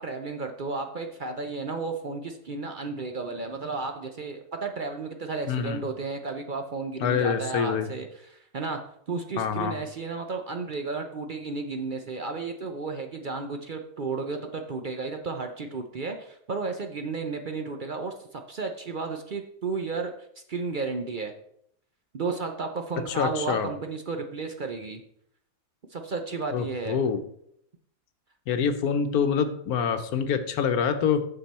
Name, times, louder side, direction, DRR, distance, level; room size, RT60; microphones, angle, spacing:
voice 1, 0.0-8.8 9.1-20.1 20.5-21.3 22.1-25.0 25.9-27.0, right 4 dB, 45° right, 5 dB, 0.7 m, -33 dB
voice 2, 5.5-5.8 7.0-7.9 9.4-9.8 23.2-23.7 26.5-27.2 28.5-31.3, left 7 dB, 80° left, 8 dB, 1.3 m, -26 dB
9.3 x 6.8 x 4.2 m, 0.72 s
omnidirectional pair, 1.5 m